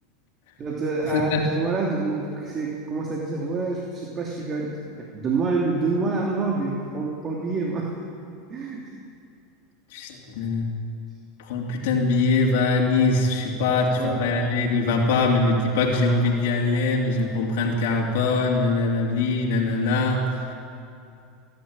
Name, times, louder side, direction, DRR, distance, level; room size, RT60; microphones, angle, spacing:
voice 1, 0.6-7.9 8.5-8.9 13.7-14.3, right 3 dB, 30° right, -1 dB, 2.9 m, -27 dB
voice 2, 9.9-10.7 11.5-20.2, left 3 dB, 75° left, -2 dB, 3.0 m, -22 dB
27.0 x 11.0 x 9.0 m, 2.5 s
supercardioid pair, 110°, 0 cm